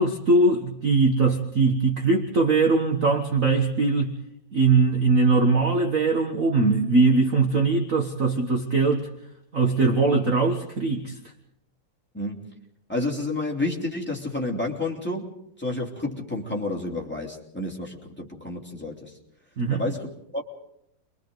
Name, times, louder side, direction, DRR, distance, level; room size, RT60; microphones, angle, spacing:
voice 1, 0.0-4.1 4.5-9.1 9.5-11.2 19.6-19.8, right 3 dB, 40° right, 3 dB, 1.6 m, -21 dB
voice 2, 12.1-12.5 12.9-15.3 15.6-19.1 19.7-20.4, left 2 dB, 5° left, -2 dB, 3.1 m, -30 dB
30.0 x 24.0 x 3.9 m, 0.76 s
omnidirectional pair, 2.4 m